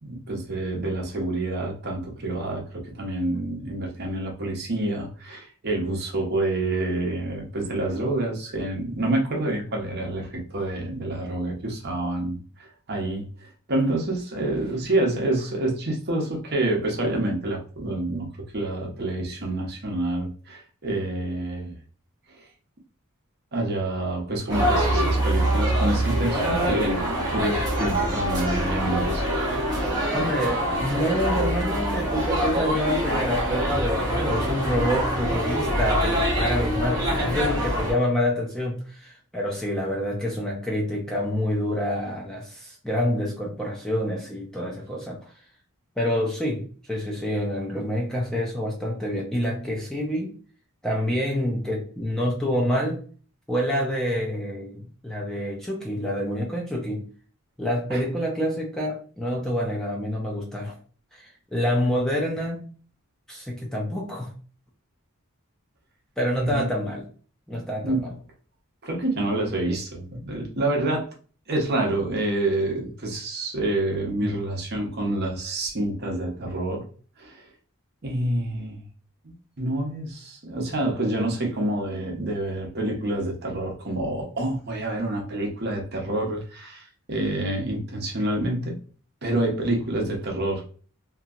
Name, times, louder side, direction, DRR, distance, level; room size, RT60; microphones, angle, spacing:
voice 1, 0.0-21.7 22.3-22.4 23.5-29.3 29.6-29.7 37.2-37.3 57.9-58.0 66.3-66.7 67.8-68.1 68.8-71.1 71.5-76.9 77.2-77.5 78.0-78.8 79.2-88.8 89.2-90.7, right 1 dB, 45° right, 0.8 m, -27 dB
sound 1, 24.5-37.9, equal, 15° right, 1.0 m, -24 dB
voice 2, 30.1-45.2 46.0-50.4 50.8-53.1 53.5-57.0 57.6-60.8 61.1-62.7 63.3-64.3 66.2-67.0 67.5-68.1 74.2-74.3, equal, ahead, 0.5 m, -27 dB
2.9 x 2.7 x 2.4 m
head